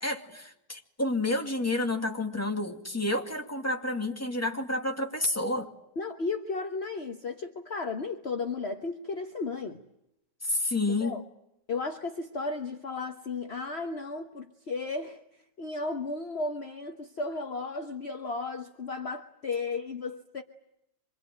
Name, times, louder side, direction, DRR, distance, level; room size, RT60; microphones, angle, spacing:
voice 1, 0.0-5.7 10.4-11.2, left 2 dB, 10° left, 4 dB, 2.2 m, -30 dB
voice 2, 6.0-9.8 11.0-11.2 11.7-15.2 15.6-20.4, left 3 dB, 40° left, 5 dB, 1.4 m, -34 dB
26.0 x 22.5 x 9.1 m, 0.82 s
omnidirectional pair, 1.8 m